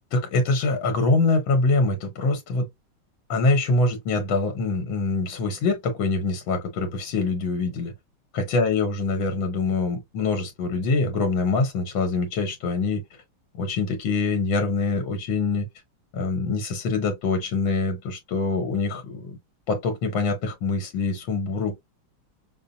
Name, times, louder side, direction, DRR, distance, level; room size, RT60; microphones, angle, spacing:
voice 1, 0.1-2.7 3.3-7.9 8.3-13.0 13.5-15.7 16.1-19.4 19.7-21.7, left 3 dB, 75° left, 1.6 m, -24 dB
5.6 x 2.1 x 2.6 m
omnidirectional pair, 2.2 m